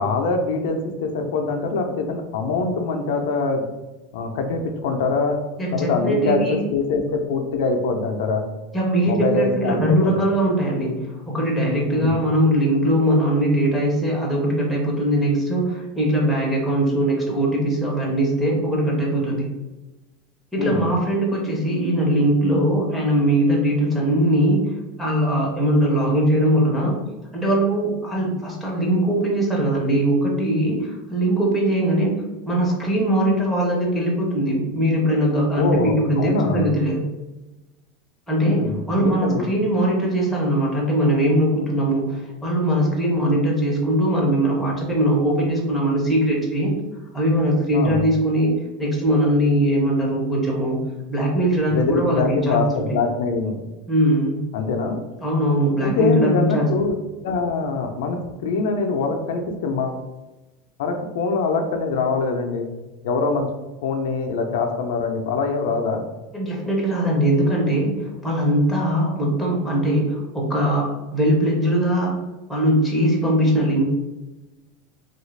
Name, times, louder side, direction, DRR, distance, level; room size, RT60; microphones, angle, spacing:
voice 1, 0.0-3.6 4.1-5.4 5.7-8.4 9.0-10.2 11.9-12.1 20.6-20.8 35.6-36.7 38.5-39.5 47.7-48.0 51.7-53.5 54.5-55.0 55.8-56.9 57.2-60.0 60.8-62.7 63.0-63.5 63.8-66.0, left 4 dB, 70° left, 4 dB, 0.4 m, -23 dB
voice 2, 5.6-6.6 8.7-19.5 20.5-27.1 27.3-37.1 38.3-46.7 47.1-50.8 51.1-52.9 53.9-54.4 55.2-56.7 66.3-72.1 72.5-73.8, right 1 dB, ahead, -4 dB, 0.6 m, -21 dB
3.2 x 2.4 x 3.1 m, 1.1 s
supercardioid pair, 180°, 0 cm